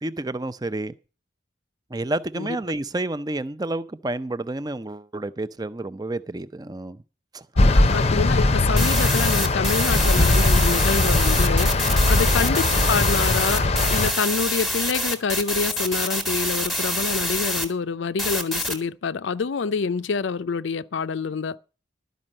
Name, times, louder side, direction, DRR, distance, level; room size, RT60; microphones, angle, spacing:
voice 1, 0.0-0.9 1.9-7.0 7.3-7.5 11.8-12.1, right 2 dB, 20° right, 0.5 m, -30 dB
sound 1, 7.6-14.1, left 2 dB, 30° left, 0.7 m, -20 dB
voice 2, 7.7-21.6, left 5 dB, 70° left, 0.5 m, -27 dB
sound 2, 8.8-17.6 18.2-18.8, equal, ahead, 1.4 m, -26 dB
12.5 x 5.3 x 8.7 m
head